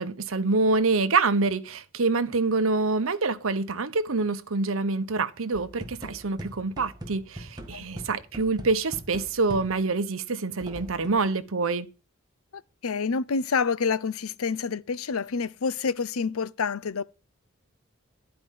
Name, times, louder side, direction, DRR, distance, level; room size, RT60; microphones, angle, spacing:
voice 1, 0.0-11.9, right 3 dB, 70° right, 0.9 m, -26 dB
sound 1, 5.5-10.0 10.6-11.3, right 1 dB, 20° right, 1.7 m, -42 dB
voice 2, 12.5-17.0, left 5 dB, 85° left, 0.6 m, -28 dB
11.0 x 5.0 x 7.4 m
head